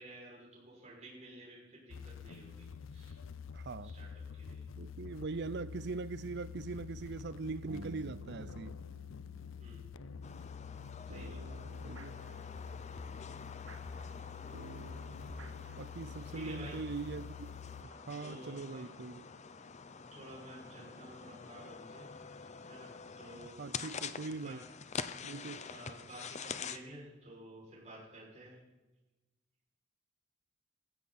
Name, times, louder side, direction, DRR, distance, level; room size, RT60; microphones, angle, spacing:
voice 1, 0.0-3.2 3.8-4.7 9.6-9.8 11.1-11.4 16.3-17.0 17.8-19.2 20.1-22.2 22.7-23.8 24.4-24.7 25.6-28.6, right 1 dB, 35° right, 6.3 m, -52 dB
sound 1, 1.9-17.8, left 6 dB, 80° left, 0.5 m, -47 dB
voice 2, 3.5-4.0 4.8-8.8 11.8-12.1 15.8-17.5 17.8-19.2 23.6-24.6 25.2-25.6, right 3 dB, 60° right, 0.6 m, -41 dB
sound 2, 6.1-16.6, right 2 dB, 85° right, 1.6 m, -54 dB
sound 3, 10.2-26.8, left 5 dB, 35° left, 0.7 m, -47 dB
16.0 x 15.5 x 4.3 m
head